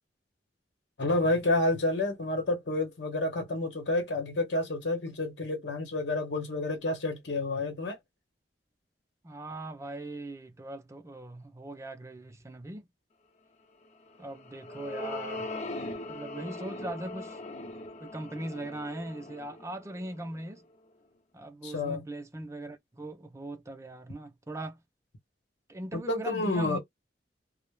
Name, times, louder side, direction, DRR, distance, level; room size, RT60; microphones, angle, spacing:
voice 1, 1.0-8.0 21.6-22.0 25.9-26.8, left 2 dB, 80° left, 0.9 m, -29 dB
voice 2, 9.2-12.9 14.2-15.5 16.1-17.4 18.0-20.7 21.3-24.8 25.7-26.8, right 1 dB, 15° right, 0.4 m, -40 dB
sound 1, 14.1-20.6, left 2 dB, 40° left, 0.5 m, -40 dB
2.2 x 2.1 x 3.1 m
head